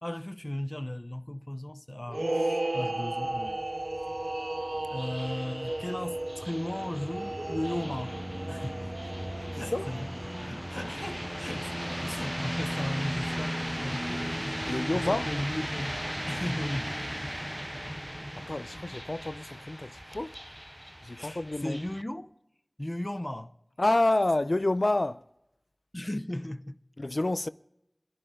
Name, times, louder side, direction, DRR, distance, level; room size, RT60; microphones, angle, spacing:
voice 1, 0.0-3.6 4.9-8.2 8.5-8.9 9.6-11.7 12.0-14.3 14.6-15.9 16.3-17.0 21.2-22.3 22.8-23.5 25.9-26.8, left 1 dB, 30° left, 0.8 m, -36 dB
sound 1, 2.1-10.7, right 1 dB, 65° right, 0.7 m, -35 dB
sound 2, 3.0-22.0, equal, 5° right, 0.5 m, -39 dB
sound 3, 5.6-18.3, equal, 40° right, 1.9 m, -40 dB
voice 2, 9.5-9.9 14.7-15.3 18.4-20.3 21.0-21.8 23.8-25.3 27.0-27.5, left 2 dB, 65° left, 0.5 m, -28 dB
28.5 x 11.0 x 3.7 m
wide cardioid pair, 40°, 0 cm